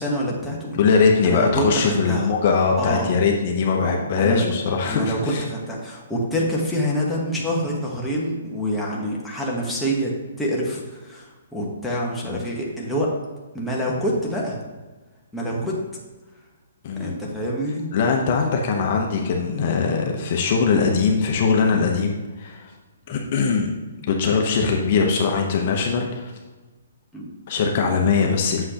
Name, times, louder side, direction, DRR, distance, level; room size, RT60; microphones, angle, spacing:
voice 1, 0.0-0.8 1.2-2.3 2.8-3.2 4.2-4.5 4.9-10.1 10.4-13.1 13.5-14.6 15.3-15.7 17.0-17.9 27.1-27.3, equal, 5° left, -5 dB, 1.2 m, -26 dB
voice 2, 0.7-5.4 12.2-12.4 16.8-17.1 17.9-22.7 23.1-23.7 24.0-26.3 27.5-28.7, left 5 dB, 40° left, 1 dB, 0.9 m, -21 dB
7.7 x 6.4 x 3.0 m, 1.2 s
hypercardioid pair, 155°, 0 cm